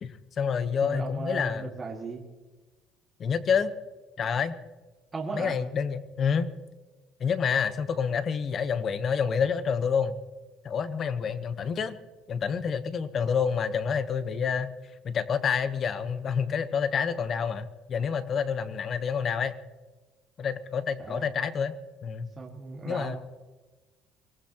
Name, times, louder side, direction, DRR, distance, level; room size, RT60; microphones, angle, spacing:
voice 1, 0.0-1.7 3.2-3.7 4.2-4.5 5.3-6.5 7.2-10.1 10.6-11.9 12.3-14.7 15.0-19.5 20.4-21.7 22.0-22.3 22.8-23.2, left 6 dB, 35° left, 11 dB, 1.1 m, -28 dB
voice 2, 0.8-2.2 5.1-5.5 21.0-21.3 22.4-23.2, right 3 dB, 20° right, -2 dB, 1.9 m, -36 dB
24.5 x 18.5 x 3.0 m, 1.3 s
cardioid pair, 160°, 0 cm